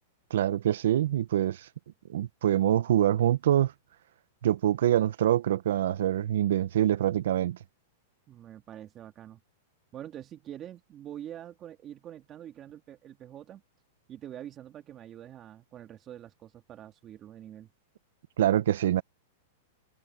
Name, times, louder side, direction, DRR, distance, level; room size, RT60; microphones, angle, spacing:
voice 1, 0.3-1.6 2.1-3.7 4.4-7.6 18.4-19.0, right 11 dB, 75° right, 1.0 m, -25 dB
voice 2, 8.3-9.4 9.9-13.6 14.1-17.7, right 11 dB, 30° right, 2.2 m, -45 dB
open air
hypercardioid pair, 140°, 0 cm